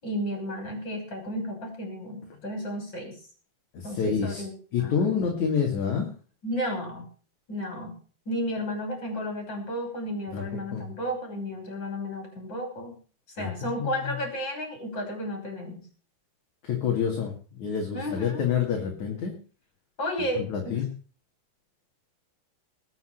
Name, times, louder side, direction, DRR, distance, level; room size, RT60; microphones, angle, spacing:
voice 1, 0.0-3.2 3.8-4.5 4.8-5.0 6.4-7.1 7.5-7.9 8.3-12.9 13.3-15.8 17.9-18.4 20.0-20.8, equal, 20° left, 3 dB, 6.5 m, -33 dB
voice 2, 3.7-4.4 4.7-6.1 10.3-10.9 13.4-13.5 13.8-14.1 16.6-17.3 17.6-19.3 20.2-20.9, left 7 dB, 45° left, 1 dB, 3.1 m, -28 dB
20.0 x 8.1 x 6.6 m, 0.40 s
omnidirectional pair, 5.6 m